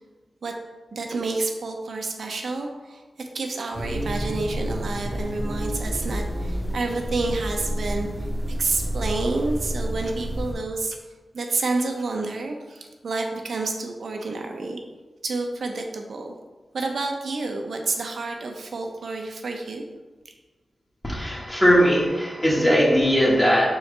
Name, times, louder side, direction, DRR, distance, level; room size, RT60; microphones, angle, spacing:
voice 1, 0.9-8.1 8.6-11.0 11.3-14.8 15.2-16.3 16.7-19.9, right 3 dB, 75° right, 3 dB, 0.8 m, -29 dB
sound 1, 3.7-10.5, equal, 5° left, 1.3 m, -29 dB
voice 2, 21.0-23.8, equal, 20° left, -6 dB, 1.7 m, -19 dB
6.2 x 4.8 x 3.3 m, 1.2 s
cardioid pair, 65°, 0 cm